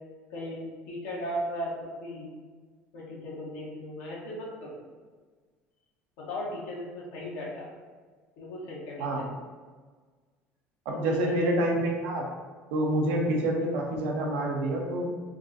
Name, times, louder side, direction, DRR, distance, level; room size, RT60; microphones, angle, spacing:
voice 1, 0.3-2.4 2.9-4.8 6.2-7.7 8.4-9.3 10.9-11.3 12.9-13.0, equal, 80° left, -4 dB, 1.0 m, -37 dB
voice 2, 10.9-12.3 12.7-15.1, right 1 dB, 85° right, 0 dB, 0.6 m, -27 dB
3.6 x 2.4 x 2.6 m, 1.5 s
supercardioid pair, 90°, 6 cm